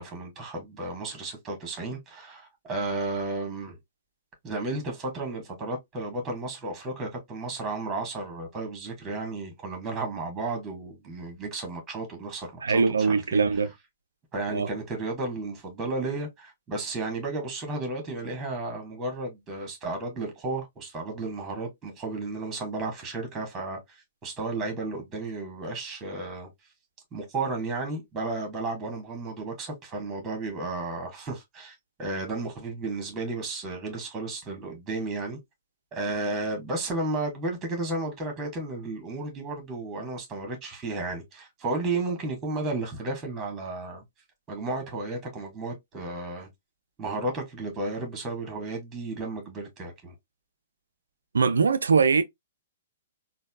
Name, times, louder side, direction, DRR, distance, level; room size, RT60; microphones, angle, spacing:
voice 1, 0.0-3.8 4.4-13.4 14.3-26.5 27.1-35.4 35.9-44.0 44.5-46.5 47.0-50.1, right 2 dB, 20° right, 1.5 m, -33 dB
voice 2, 12.6-13.7 14.5-14.7 51.3-52.2, right 5 dB, 75° right, 0.4 m, -22 dB
4.1 x 2.3 x 2.2 m
figure-of-eight pair, 115°, 0 cm